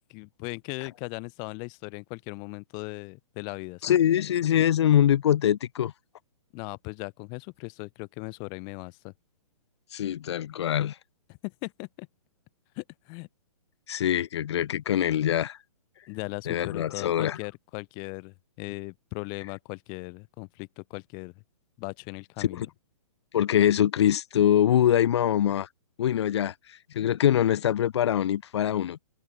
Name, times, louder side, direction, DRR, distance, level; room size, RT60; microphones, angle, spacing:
voice 1, 0.1-4.0 6.5-9.1 11.4-12.1 12.8-13.3 16.1-21.3 21.8-22.7, left 35 dB, 20° left, 3.0 m, -38 dB
voice 2, 3.8-5.9 9.9-11.0 13.9-15.6 16.5-17.4 22.4-22.7 23.3-25.7 26.0-29.0, left 10 dB, 45° left, 5.4 m, -24 dB
open air
hypercardioid pair, 170°, 19 cm